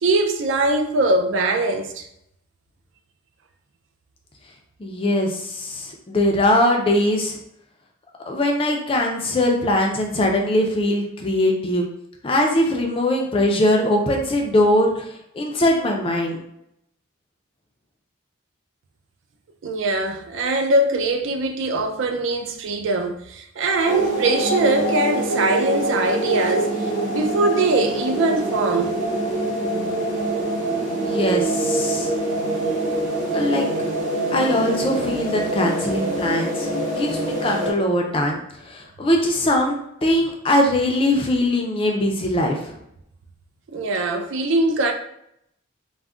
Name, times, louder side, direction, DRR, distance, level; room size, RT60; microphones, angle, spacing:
voice 1, 0.0-2.0 19.6-26.7 27.1-28.9 43.7-44.9, right 2 dB, 65° right, 0.4 m, -22 dB
voice 2, 4.8-7.4 8.3-11.9 12.2-15.1 15.4-16.4 30.9-32.1 33.3-33.7 34.3-42.8, left 1 dB, 25° left, 0.4 m, -21 dB
sound 1, 23.8-37.7, right 1 dB, 35° right, 0.9 m, -24 dB
2.3 x 2.1 x 3.6 m
head